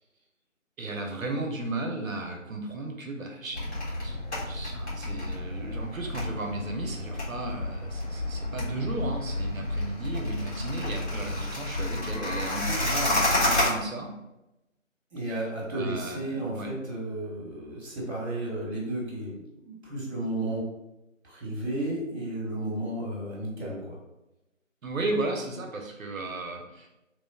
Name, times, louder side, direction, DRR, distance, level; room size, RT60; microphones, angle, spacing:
voice 1, 0.8-14.1 15.7-16.7 24.8-26.9, right 2 dB, 90° right, 2 dB, 0.7 m, -35 dB
sound 1, 3.5-13.7, left 1 dB, 55° left, 1.2 m, -30 dB
voice 2, 15.1-20.7 21.2-24.0, right 1 dB, 55° right, -3 dB, 1.1 m, -33 dB
2.9 x 2.1 x 2.3 m, 0.95 s
figure-of-eight pair, 165°, 40 cm